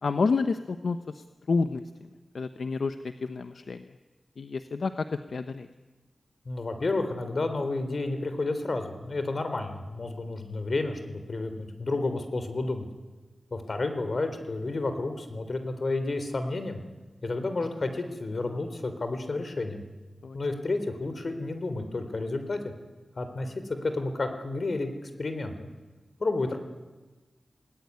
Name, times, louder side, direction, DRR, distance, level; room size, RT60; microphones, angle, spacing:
voice 1, 0.0-2.1 2.3-3.8 4.4-5.7 20.2-20.4, left 4 dB, 75° left, 9 dB, 1.0 m, -29 dB
voice 2, 6.5-12.9 13.5-16.8 17.2-19.8 20.3-22.6 23.2-23.5 23.8-25.5 26.2-26.6, left 2 dB, 55° left, 8 dB, 3.6 m, -31 dB
28.0 x 19.0 x 9.6 m, 1.2 s
wide cardioid pair, 75°, 0 cm